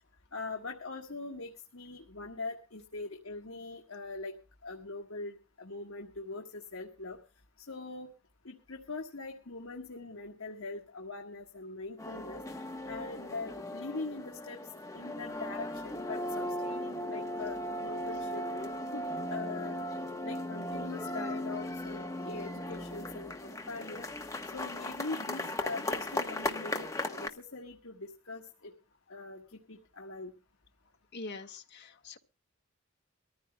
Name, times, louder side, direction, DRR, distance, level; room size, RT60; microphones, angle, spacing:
voice 1, 0.3-4.3 4.6-7.2 7.6-8.1 8.4-12.4 12.9-14.6 14.9-19.8 20.2-24.1 24.5-28.7 29.1-30.3, left 3 dB, 70° left, 1 dB, 1.5 m, -42 dB
sound 1, 12.0-27.3, left 1 dB, 15° left, 1.0 m, -37 dB
voice 2, 31.1-32.2, left 3 dB, 50° left, 4 dB, 1.4 m, -44 dB
24.0 x 14.5 x 2.2 m, 0.34 s
head